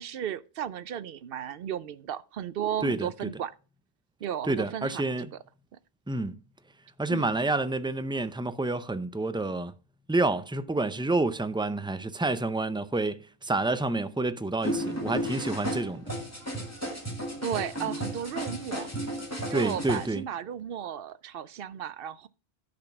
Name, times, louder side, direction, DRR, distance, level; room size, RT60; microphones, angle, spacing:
voice 1, 0.0-3.5 4.2-5.3 7.1-7.4 17.4-18.9 19.5-22.3, right 9 dB, 70° right, 0.8 m, -34 dB
voice 2, 2.8-3.3 4.5-5.3 6.1-6.4 7.0-9.7 10.1-16.0 19.5-20.2, right 2 dB, 10° right, 0.3 m, -28 dB
sound 1, 14.6-20.1, equal, 15° left, 2.2 m, -34 dB
10.5 x 5.2 x 5.8 m
omnidirectional pair, 1.0 m